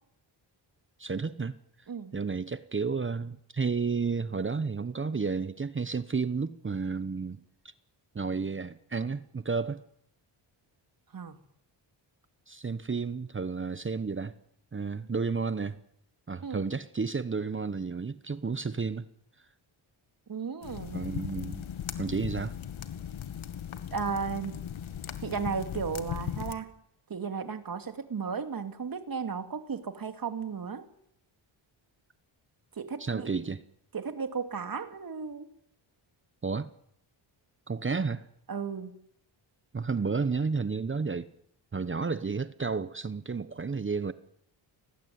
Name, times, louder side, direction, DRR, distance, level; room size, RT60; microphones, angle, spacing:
voice 1, 1.0-1.6 2.1-7.4 8.1-9.8 12.5-14.3 14.7-15.8 16.3-19.1 20.9-21.6 22.0-22.5 33.0-33.6 36.4-36.7 37.7-38.2 39.7-41.3 41.7-44.1, right 4 dB, 25° right, 1.0 m, -31 dB
voice 2, 20.3-21.0 23.9-24.6 25.2-26.7 27.1-30.9 32.8-33.3 33.9-35.5 38.5-38.9, right 5 dB, 45° right, 2.7 m, -35 dB
sound 1, 20.6-26.6, left 9 dB, 75° left, 2.2 m, -38 dB
29.5 x 19.5 x 9.5 m
wide cardioid pair, 125°, 49 cm